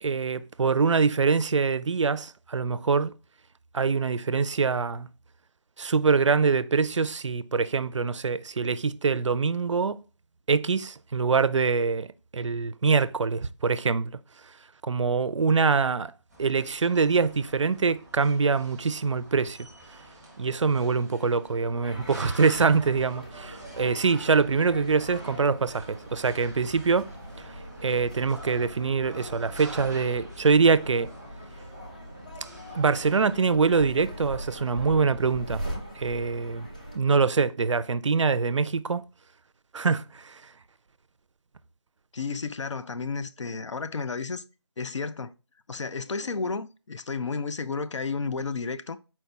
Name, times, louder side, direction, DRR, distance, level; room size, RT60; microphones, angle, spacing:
voice 1, 0.0-3.1 3.7-5.1 5.8-10.0 10.5-12.1 12.3-14.1 14.9-16.1 16.4-19.6 20.4-27.1 27.8-31.1 32.7-35.6 36.0-36.7 36.9-39.0 39.7-40.3, right 5 dB, 85° right, 0.4 m, -24 dB
sound 1, 16.3-33.5, right 1 dB, ahead, 0.8 m, -47 dB
sound 2, 21.8-37.0, equal, 15° left, 0.4 m, -41 dB
voice 2, 42.1-44.4 44.8-45.3 45.7-49.0, left 4 dB, 85° left, 0.4 m, -32 dB
4.4 x 2.3 x 3.9 m
figure-of-eight pair, 170°, 15 cm